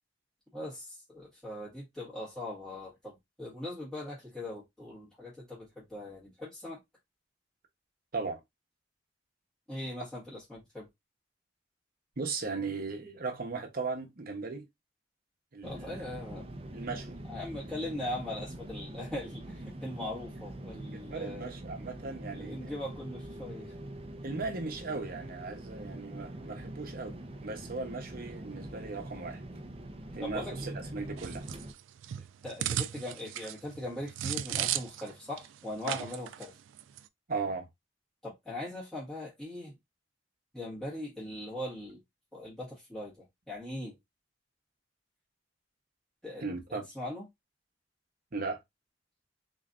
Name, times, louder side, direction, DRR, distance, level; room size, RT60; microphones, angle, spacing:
voice 1, 0.5-6.8 9.7-10.9 15.6-16.6 17.3-21.5 22.3-23.7 30.2-30.7 32.4-36.5 38.2-39.8 40.5-42.0 42.3-43.9 46.2-46.4 46.7-47.3, left 1 dB, ahead, 1.6 m, -40 dB
voice 2, 12.2-14.6 15.5-16.0 16.7-17.2 20.9-22.7 24.2-29.4 30.1-31.4 37.3-37.7 46.4-46.8 48.3-48.6, right 4 dB, 50° right, 1.0 m, -37 dB
sound 1, 15.6-31.7, right 1 dB, 30° right, 0.7 m, -44 dB
sound 2, 31.2-35.1 35.4-35.5 35.9-36.5 36.8-37.0, right 11 dB, 85° right, 0.3 m, -35 dB
3.9 x 3.2 x 2.5 m
head